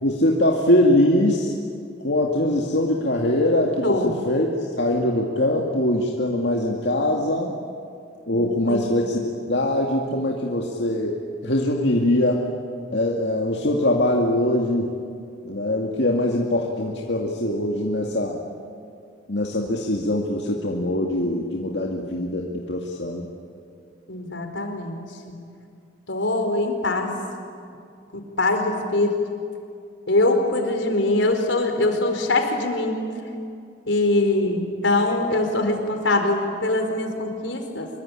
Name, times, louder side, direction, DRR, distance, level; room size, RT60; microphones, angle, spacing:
voice 1, 0.0-1.5 2.0-4.5 4.8-7.5 8.3-12.5 12.9-14.9 15.4-18.4 19.3-23.3, left 1 dB, 65° left, -1 dB, 2.3 m, -22 dB
voice 2, 3.8-4.1 8.3-8.8 24.1-25.4 26.1-27.2 28.1-29.2 30.1-33.0 33.9-37.9, left 2 dB, 85° left, 4 dB, 4.6 m, -23 dB
25.5 x 23.5 x 10.0 m, 2.4 s
head